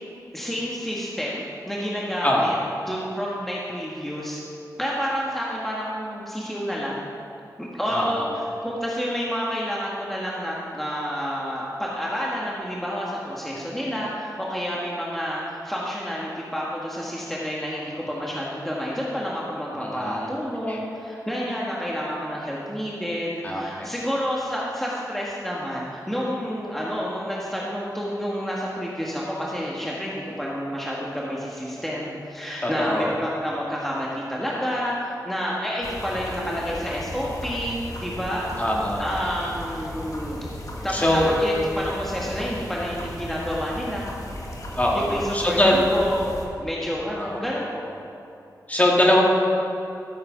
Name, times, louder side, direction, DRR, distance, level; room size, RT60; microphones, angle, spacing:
voice 1, 0.3-2.6 2.8-4.4 4.8-7.1 7.6-38.5 39.0-40.4 40.8-44.1 44.9-46.3 46.6-47.8, equal, 5° left, -5 dB, 1.7 m, -29 dB
voice 2, 2.2-2.5 7.9-8.3 19.8-20.3 20.7-20.8 23.4-23.9 32.6-33.1 38.6-39.1 40.9-41.3 44.8-45.9 47.2-47.4 48.7-49.2, left 1 dB, 20° left, -2 dB, 2.1 m, -22 dB
sound 1, 35.8-46.5, left 1 dB, 50° left, 1.7 m, -36 dB
13.5 x 7.8 x 5.1 m, 2.7 s
wide cardioid pair, 75°, 7 cm